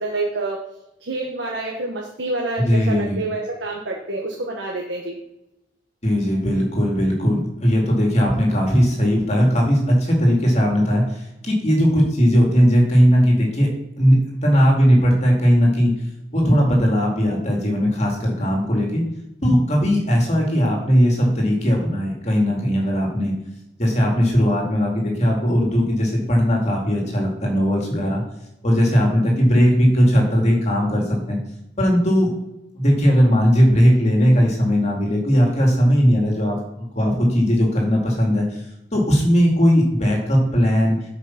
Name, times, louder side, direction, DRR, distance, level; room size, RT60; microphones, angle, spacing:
voice 1, 0.0-0.6 1.0-5.2, right 2 dB, 80° right, -1 dB, 1.3 m, -27 dB
voice 2, 2.6-3.2 6.0-13.7 14.0-15.9 16.3-19.0 19.4-23.3 23.8-28.2 28.6-31.4 31.8-32.3 32.8-36.6 36.9-38.6 38.9-41.0, equal, 40° left, 0 dB, 2.3 m, -18 dB
8.4 x 5.2 x 5.8 m, 0.91 s
head